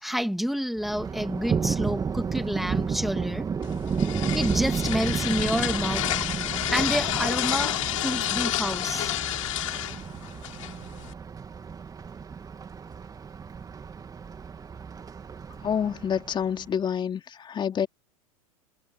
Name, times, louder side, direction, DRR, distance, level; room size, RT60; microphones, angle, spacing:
voice 1, 0.0-3.5 4.3-6.1 6.7-9.1, equal, ahead, 2.1 m, -29 dB
Thunder, 0.8-16.7, right 6 dB, 20° right, 2.6 m, -32 dB
sound 1, 3.6-11.1, left 14 dB, 65° left, 7.3 m, -30 dB
voice 2, 15.6-17.9, left 8 dB, 25° left, 3.6 m, -28 dB
figure-of-eight pair, 90°, 18 cm